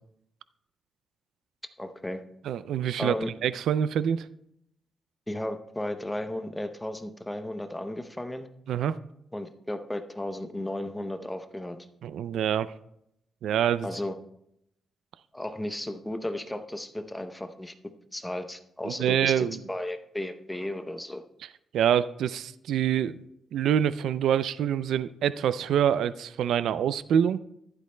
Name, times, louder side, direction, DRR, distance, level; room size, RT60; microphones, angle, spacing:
voice 1, 1.8-2.2 3.0-3.3 5.3-8.5 9.3-11.8 13.8-14.2 15.3-17.7 18.1-21.2, left 1 dB, 10° left, 8 dB, 0.7 m, -34 dB
voice 2, 2.4-3.1 3.4-4.3 8.7-9.0 12.0-12.7 13.4-13.9 18.8-19.6 21.7-23.2 23.5-27.4, right 9 dB, 90° right, 15 dB, 0.3 m, -26 dB
14.5 x 11.5 x 2.2 m, 0.78 s
cardioid pair, 130°, 0 cm